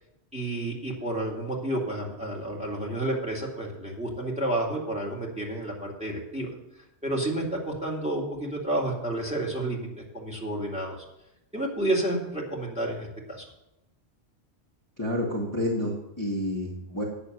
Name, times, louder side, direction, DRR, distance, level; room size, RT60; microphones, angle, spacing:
voice 1, 0.3-6.5 7.0-9.9 10.1-11.0 11.5-13.5, right 1 dB, 5° right, -2 dB, 2.3 m, -30 dB
voice 2, 15.0-17.0, left 1 dB, 15° left, -5 dB, 1.6 m, -29 dB
8.8 x 6.7 x 7.9 m, 0.87 s
omnidirectional pair, 1.1 m